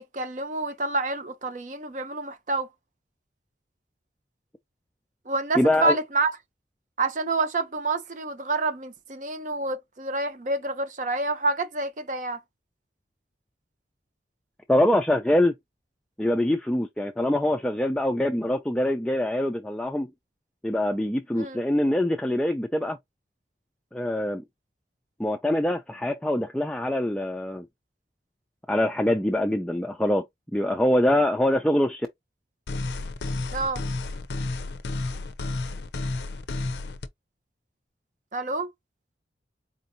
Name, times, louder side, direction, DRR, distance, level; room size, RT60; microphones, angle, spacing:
voice 1, 0.0-2.7 5.3-6.3 7.0-12.4 21.4-21.6 33.5-33.8 38.3-38.7, right 3 dB, 45° right, 0.7 m, -28 dB
voice 2, 5.5-5.9 14.7-15.5 16.2-20.1 20.6-23.0 23.9-24.4 25.2-27.7 28.7-30.2 30.5-32.1, left 1 dB, 5° left, 0.3 m, -24 dB
sound 1, 32.7-37.1, left 2 dB, 75° left, 0.5 m, -31 dB
4.4 x 2.6 x 2.6 m
head